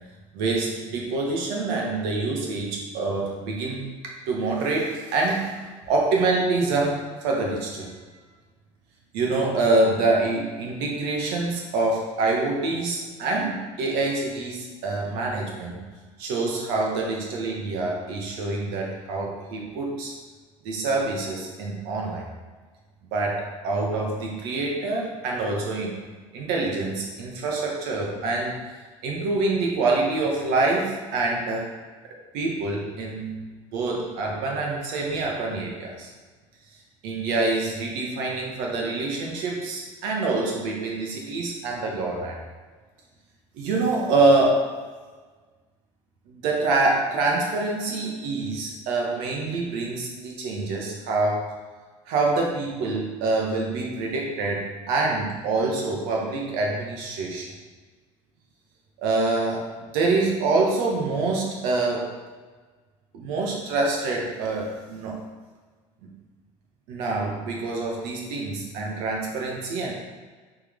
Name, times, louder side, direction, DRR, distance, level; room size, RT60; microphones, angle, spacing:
voice 1, 0.3-3.8 4.3-5.6 5.9-7.9 9.1-15.8 16.2-20.1 20.6-22.3 23.1-26.0 26.3-28.6 29.0-31.7 32.3-36.1 37.0-42.4 43.5-44.7 46.3-51.5 52.1-57.5 59.0-62.1 63.1-65.3 66.9-69.9, right 3 dB, 75° right, -1 dB, 1.7 m, -26 dB
6.8 x 4.5 x 3.8 m, 1.4 s
supercardioid pair, 95°, 16 cm